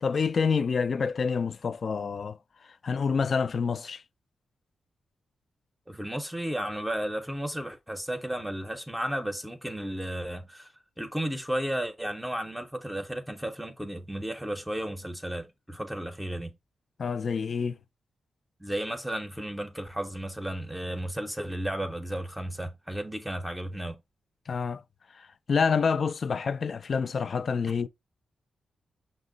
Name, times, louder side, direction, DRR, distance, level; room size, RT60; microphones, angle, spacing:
voice 1, 0.0-2.4 2.8-4.0 17.0-17.8 24.5-24.8 25.1-27.9, left 5 dB, 55° left, 0.3 m, -27 dB
voice 2, 5.9-10.7 11.0-16.5 18.6-24.0, right 1 dB, 5° right, 0.6 m, -33 dB
5.8 x 2.1 x 3.8 m
cardioid pair, 95°, 0 cm